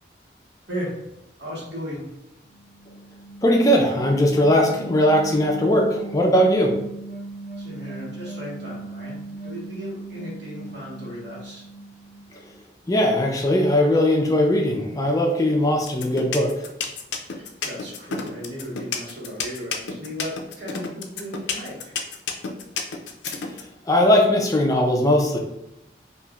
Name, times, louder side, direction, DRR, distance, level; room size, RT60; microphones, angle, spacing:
voice 1, 0.7-1.0 1.4-2.1 7.6-11.6 17.3-21.9, equal, 75° right, -6 dB, 1.3 m, -35 dB
sound 1, 2.5-12.6, right 2 dB, 50° right, 1.0 m, -38 dB
voice 2, 3.4-6.7 12.9-16.5 23.9-25.4, left 1 dB, 20° left, 1 dB, 0.4 m, -19 dB
sound 2, 15.9-23.6, left 6 dB, 80° left, 0.4 m, -29 dB
3.0 x 2.5 x 2.4 m, 0.86 s
head